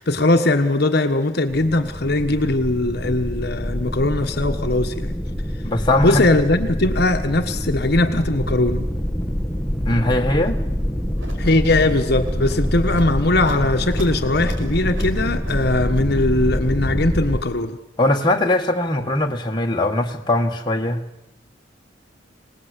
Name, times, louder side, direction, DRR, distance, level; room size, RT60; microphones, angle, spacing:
voice 1, 0.0-5.2 6.0-8.9 11.4-17.8, left 2 dB, 55° left, 6 dB, 1.4 m, -20 dB
sound 1, 1.5-17.4, equal, 5° left, 1.4 m, -25 dB
voice 2, 5.6-6.3 9.8-10.6 18.0-21.0, left 1 dB, 20° left, 1 dB, 1.7 m, -20 dB
sound 2, 11.2-16.4, right 1 dB, 85° right, 5.5 m, -42 dB
26.0 x 19.0 x 8.3 m, 0.91 s
head